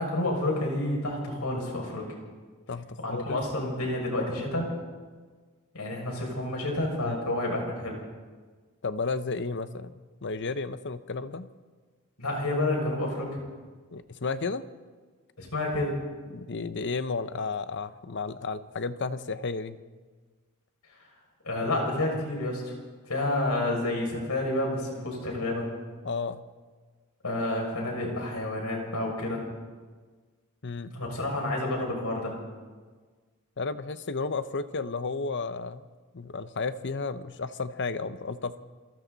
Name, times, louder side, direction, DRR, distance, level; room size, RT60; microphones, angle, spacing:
voice 1, 0.0-2.0 3.0-4.7 5.7-8.0 12.2-13.4 15.4-16.0 21.4-22.7 23.1-25.7 27.2-29.4 30.9-32.3, left 1 dB, 80° left, -1 dB, 6.5 m, -29 dB
voice 2, 2.7-3.4 7.0-7.2 8.8-9.9 10.2-11.5 13.9-14.6 16.3-19.8 26.0-26.4 30.6-30.9 33.6-35.8 36.1-38.6, left 4 dB, 55° left, 12 dB, 0.9 m, -32 dB
27.5 x 23.0 x 4.1 m, 1.4 s
head